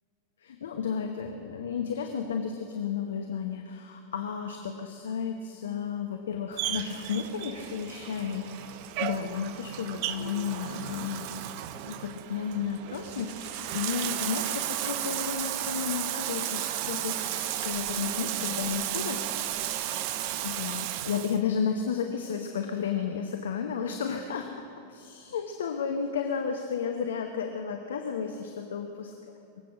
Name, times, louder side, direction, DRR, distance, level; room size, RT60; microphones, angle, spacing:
voice 1, 0.4-11.4 11.9-19.3 20.4-29.1, left 6 dB, 70° left, 4 dB, 1.0 m, -33 dB
Bathtub (filling or washing), 6.5-21.4, right 12 dB, 50° right, 0.6 m, -34 dB
23.0 x 8.3 x 6.3 m, 2.5 s
figure-of-eight pair, 90°, 0 cm